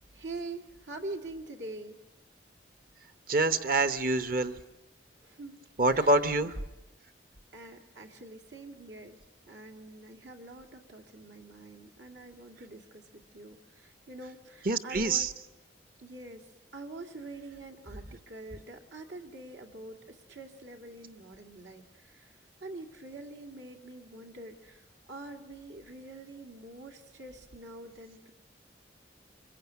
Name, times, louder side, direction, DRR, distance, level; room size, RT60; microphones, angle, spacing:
voice 1, 0.1-2.0 5.2-5.6 5.9-6.5 7.5-9.2 9.5-15.3 16.0-16.5 16.7-28.3, right 2 dB, 80° right, 3 dB, 2.5 m, -45 dB
voice 2, 3.3-4.6 5.8-6.5 14.7-15.3, right 2 dB, 50° right, 10 dB, 1.1 m, -26 dB
25.5 x 22.5 x 9.5 m, 1.0 s
head